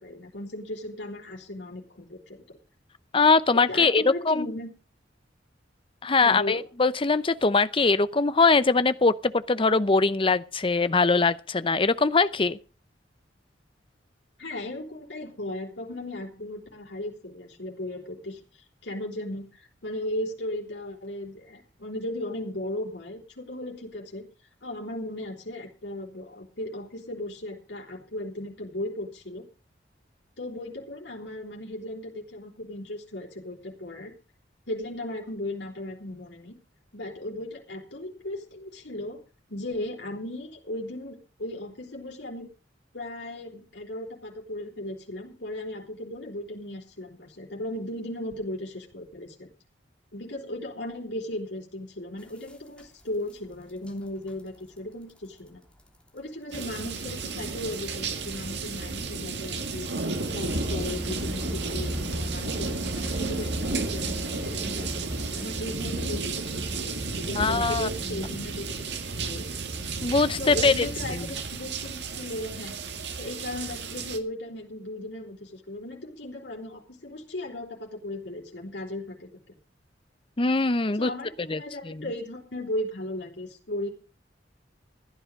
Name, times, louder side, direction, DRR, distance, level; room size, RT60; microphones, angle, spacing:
voice 1, 0.0-2.6 3.5-4.7 6.2-6.6 14.4-18.4 18.8-24.3 24.6-29.5 30.4-34.1 34.7-36.6 36.9-39.2 39.5-42.5 42.9-49.5 50.1-55.6 56.1-59.9 60.3-68.7 69.2-69.5 70.4-72.8 73.1-79.6 80.9-83.9, left 1 dB, 70° left, 4.3 m, -36 dB
voice 2, 3.1-4.5 6.0-12.6 67.4-68.3 70.0-70.9 80.4-81.1 81.5-81.6 81.9-82.0, left 4 dB, 30° left, 0.7 m, -22 dB
sound 1, 52.2-53.3 53.7-53.9 54.3-54.5 54.8-54.9 55.1-55.2 55.8-55.9 56.7-56.8 57.2-57.3 58.6-58.7 59.3-59.4 60.5-68.8, equal, 5° left, 3.0 m, -38 dB
sound 2, 56.5-74.2, right 3 dB, 65° right, 1.9 m, -32 dB
15.5 x 10.5 x 5.4 m
head